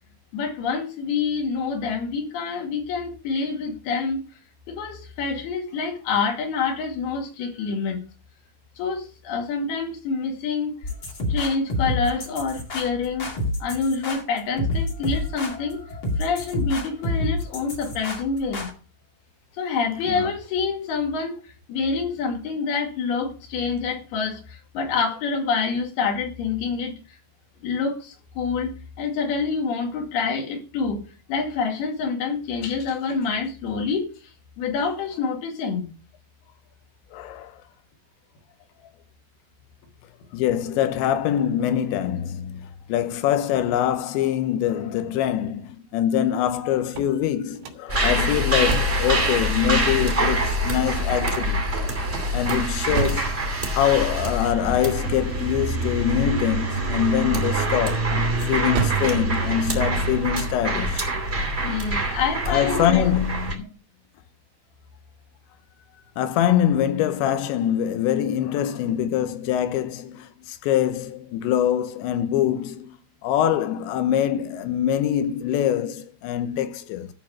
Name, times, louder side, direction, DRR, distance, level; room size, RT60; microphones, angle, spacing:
voice 1, 0.3-4.2 4.7-8.0 8.8-10.8 11.3-13.3 13.6-15.8 16.2-18.7 19.6-21.4 21.7-27.0 27.6-28.7 29.0-31.0 31.3-34.1 34.6-35.9 61.6-63.1 63.6-63.7, left 5 dB, 60° left, 4.0 m, -27 dB
sound 1, 10.8-18.7, left 1 dB, 40° left, 2.0 m, -28 dB
voice 2, 37.1-37.6 40.3-51.7 52.3-53.4 53.7-58.1 58.5-61.1 62.5-63.6 66.2-73.0 73.2-77.1, left 10 dB, 75° left, 2.9 m, -24 dB
sound 2, 46.8-49.1 52.1-53.4 57.3-57.8 58.3-59.1, right 6 dB, 75° right, 3.8 m, -31 dB
sound 3, 47.9-63.5, right 1 dB, 20° right, 1.6 m, -25 dB
13.5 x 4.7 x 7.2 m
omnidirectional pair, 5.7 m